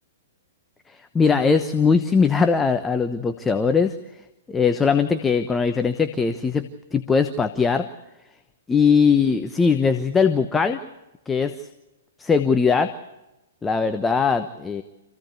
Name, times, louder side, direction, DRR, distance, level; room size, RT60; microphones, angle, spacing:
voice 1, 0.9-3.9 4.5-6.6 6.9-7.9 8.7-10.9 11.3-11.5 12.2-12.9 13.6-14.8, left 5 dB, 10° left, 8 dB, 1.0 m, -20 dB
27.0 x 16.0 x 8.2 m, 0.99 s
figure-of-eight pair, 110°, 0 cm